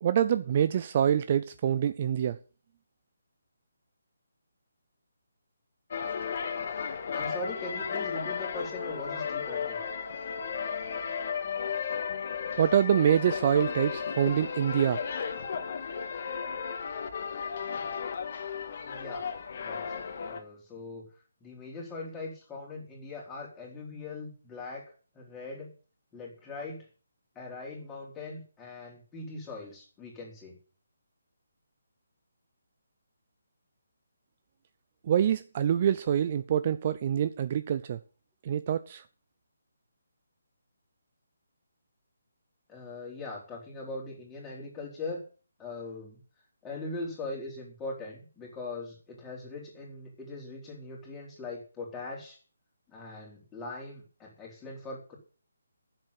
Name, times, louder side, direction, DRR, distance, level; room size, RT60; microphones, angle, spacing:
voice 1, 0.0-2.4 12.6-15.0 35.0-38.0 38.4-39.0, right 9 dB, 35° right, 0.5 m, -26 dB
sound 1, 5.9-20.4, left 6 dB, 45° left, 1.8 m, -34 dB
voice 2, 7.1-9.8 18.8-19.3 19.6-21.1 21.4-25.7 26.1-26.9 27.3-30.6 42.7-45.3 45.6-46.2 46.6-52.4 52.9-55.2, left 2 dB, 10° left, 4.2 m, -41 dB
10.5 x 7.8 x 8.2 m
hypercardioid pair, 165°, 0 cm